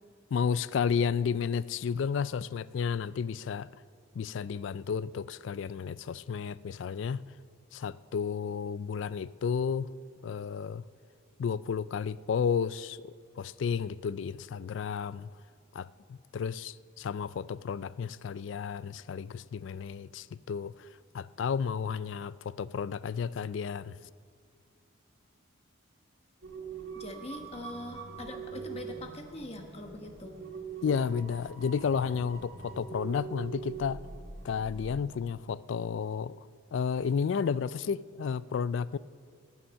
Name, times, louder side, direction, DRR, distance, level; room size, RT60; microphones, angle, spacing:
voice 1, 0.3-3.7 4.1-7.2 7.7-9.9 10.2-10.8 11.4-15.3 15.7-20.9 21.1-24.0 30.8-34.0 34.4-39.0, left 6 dB, 65° left, 19 dB, 0.3 m, -32 dB
sound 1, 26.4-35.0, right 6 dB, 70° right, 2.1 m, -43 dB
voice 2, 26.9-30.4, left 2 dB, 30° left, 4 dB, 1.2 m, -42 dB
19.0 x 7.2 x 6.4 m, 2.1 s
head